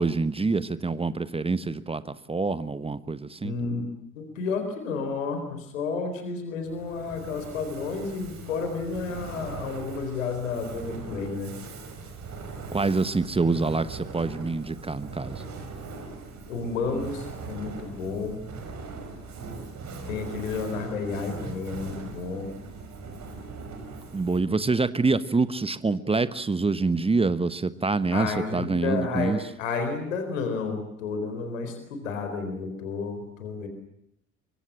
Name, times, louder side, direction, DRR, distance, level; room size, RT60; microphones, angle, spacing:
voice 1, 0.0-3.5 12.7-15.4 24.1-29.4, right 3 dB, 15° right, 15 dB, 1.2 m, -26 dB
voice 2, 3.4-3.8 4.1-11.5 16.5-18.4 20.1-22.5 28.1-33.7, left 4 dB, 70° left, 7 dB, 4.3 m, -31 dB
Fire, 6.6-24.6, right 4 dB, 45° right, 5.9 m, -40 dB
25.0 x 24.0 x 7.5 m, 0.76 s
figure-of-eight pair, 55°, 40 cm